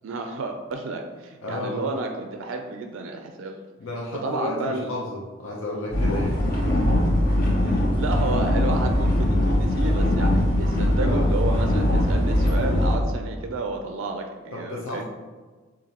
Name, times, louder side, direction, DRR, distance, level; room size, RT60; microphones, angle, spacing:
voice 1, 0.0-3.5 4.2-4.9 7.6-15.1, right 3 dB, 65° right, 4 dB, 0.4 m, -31 dB
voice 2, 1.4-1.8 3.8-6.4 11.0-11.3 14.5-15.1, left 1 dB, 70° left, -3 dB, 0.7 m, -32 dB
sound 1, 5.9-13.0, left 1 dB, 40° left, 0.9 m, -21 dB
6.8 x 2.6 x 2.8 m, 1.3 s
head